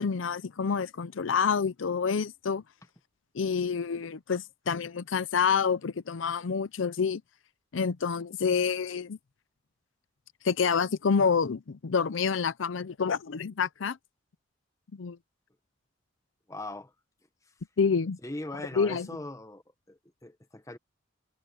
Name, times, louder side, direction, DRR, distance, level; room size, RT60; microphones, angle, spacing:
voice 1, 0.0-2.6 3.3-7.2 7.7-9.2 10.4-14.0 14.9-15.2 17.8-18.2 18.8-19.1, left 6 dB, 85° left, 0.6 m, -28 dB
voice 2, 16.5-16.9 18.2-19.6 19.9-20.8, left 2 dB, 15° left, 1.2 m, -40 dB
head